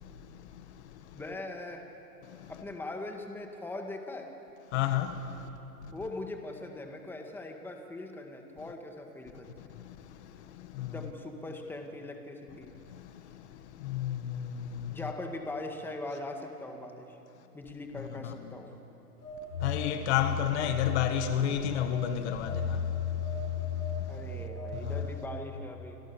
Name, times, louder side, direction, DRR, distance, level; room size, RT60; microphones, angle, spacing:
voice 1, 1.1-1.8 2.5-4.3 5.9-9.7 10.8-12.7 14.9-17.2 17.5-18.7 24.1-26.0, left 2 dB, 5° left, 1.9 m, -41 dB
voice 2, 4.7-5.1 13.9-14.2 19.6-22.5, left 11 dB, 45° left, 1.6 m, -29 dB
Telephone, 19.2-21.5 21.9-25.0, left 5 dB, 80° left, 6.5 m, -34 dB
28.5 x 25.0 x 7.2 m
hypercardioid pair, 145°, 47 cm